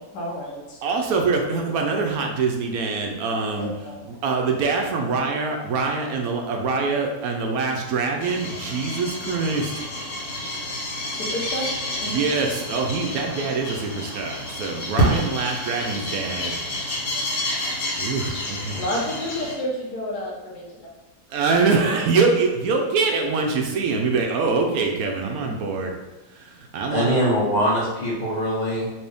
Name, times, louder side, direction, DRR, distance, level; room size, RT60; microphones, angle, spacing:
voice 1, 0.0-0.8 3.6-4.0 11.1-11.7 12.0-12.1 18.7-20.6, equal, 85° left, -2 dB, 1.5 m, -30 dB
voice 2, 0.8-9.8 12.0-16.6 18.0-18.9 21.3-25.9 26.3-27.3, right 4 dB, 70° right, 2 dB, 1.0 m, -24 dB
sound 1, 8.2-19.5, equal, 70° left, 1.4 m, -29 dB
voice 3, 26.9-28.9, equal, 35° left, -4 dB, 0.9 m, -22 dB
4.4 x 2.7 x 3.4 m, 1.1 s
omnidirectional pair, 1.7 m